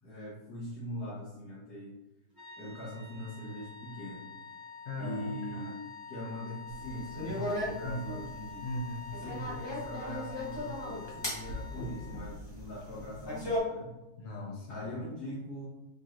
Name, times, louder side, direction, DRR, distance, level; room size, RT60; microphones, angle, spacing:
voice 1, 0.0-1.9 2.6-4.3 5.0-5.7 6.1-8.6 9.2-13.9 14.7-15.6, left 1 dB, 85° left, -10 dB, 1.7 m, -41 dB
sound 1, 2.3-12.3, left 4 dB, 15° right, 0.9 m, -47 dB
voice 2, 4.8-5.6 7.8-8.1 8.6-9.2 14.2-14.9, left 1 dB, 60° left, -3 dB, 0.7 m, -38 dB
sound 2, 6.7-13.6, left 1 dB, 25° left, 0.6 m, -38 dB
4.7 x 3.0 x 2.5 m, 1.0 s
omnidirectional pair, 1.6 m